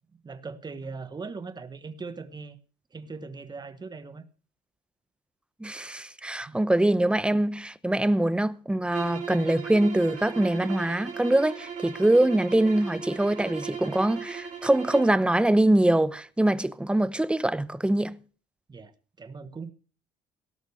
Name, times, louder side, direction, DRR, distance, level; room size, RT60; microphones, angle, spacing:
voice 1, 0.2-2.6 2.9-4.2 6.4-6.6 18.7-19.7, right 4 dB, 25° right, 1.5 m, -40 dB
voice 2, 5.6-18.2, right 1 dB, 5° right, 0.8 m, -23 dB
sound 1, 8.8-15.2, right 6 dB, 45° right, 3.1 m, -37 dB
18.0 x 6.5 x 6.5 m
cardioid pair, 110°, 17 cm